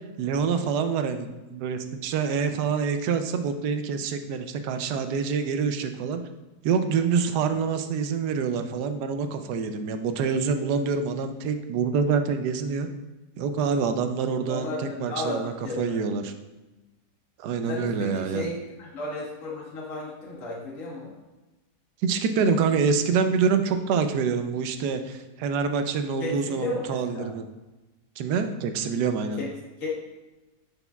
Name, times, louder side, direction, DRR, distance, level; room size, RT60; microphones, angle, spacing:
voice 1, 0.2-6.2 6.6-12.9 13.4-16.3 17.4-18.5 22.0-27.5 28.2-29.4, right 5 dB, 85° right, 8 dB, 1.2 m, -26 dB
voice 2, 14.3-16.0 17.7-21.1 26.0-27.3 29.4-29.5 29.8-29.9, left 2 dB, 55° left, -4 dB, 1.5 m, -34 dB
6.8 x 6.2 x 2.3 m, 1.1 s
omnidirectional pair, 1.7 m